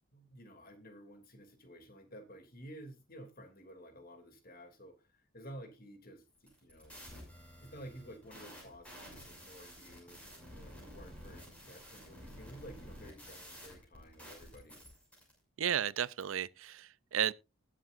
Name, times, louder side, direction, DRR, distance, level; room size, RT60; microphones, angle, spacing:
voice 1, 0.1-7.0 7.6-14.8, equal, 45° left, 2.7 m, -52 dB
sound 1, 6.4-15.3, equal, 5° left, 6.3 m, -52 dB
voice 2, 15.6-17.3, right 9 dB, 75° right, 0.5 m, -33 dB
20.5 x 7.6 x 2.5 m
head